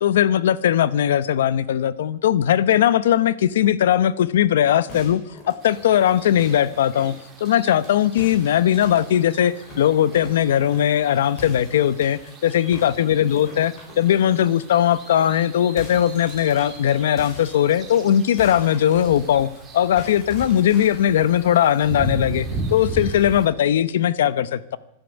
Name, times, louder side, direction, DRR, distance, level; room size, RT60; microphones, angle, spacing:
voice 1, 0.0-5.2 5.5-19.5 19.7-24.8, left 10 dB, 75° left, 17 dB, 0.8 m, -19 dB
sound 1, 4.9-7.9 8.2-11.0 11.4-12.3 12.7-14.5 14.9-15.0 15.3-19.6 20.0-21.1, left 1 dB, 25° left, 4.5 m, -43 dB
sound 2, 5.6-23.5, right 2 dB, 10° right, 2.4 m, -37 dB
12.5 x 12.5 x 8.0 m, 0.85 s
supercardioid pair, 175°, 0 cm